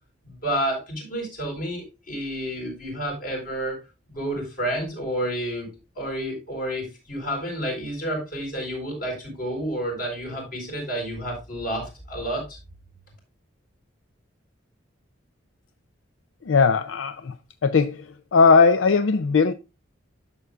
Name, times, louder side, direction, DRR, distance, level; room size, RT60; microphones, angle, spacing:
voice 1, 0.2-3.8 4.1-12.6, right 1 dB, 45° left, 4.1 m, -30 dB
voice 2, 16.5-17.3 17.6-18.0 18.3-19.5, left 4 dB, 80° left, 0.5 m, -18 dB
11.5 x 6.8 x 2.4 m
head